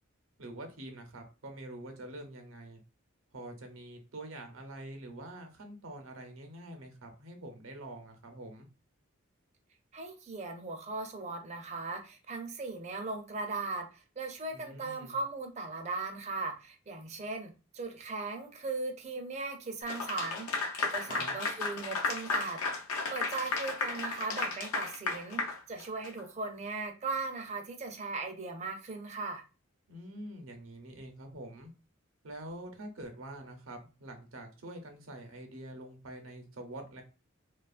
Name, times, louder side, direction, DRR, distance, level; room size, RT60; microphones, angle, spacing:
voice 1, 0.4-2.8 3.3-8.7 14.5-15.2 21.1-21.4 29.9-31.7 32.2-37.0, right 1 dB, 70° right, 0.7 m, -46 dB
voice 2, 9.9-20.5 20.9-22.6 23.1-29.4, right 3 dB, 30° right, 0.4 m, -38 dB
Clapping / Applause, 19.9-26.2, left 3 dB, 85° left, 0.6 m, -34 dB
2.8 x 2.3 x 2.4 m
head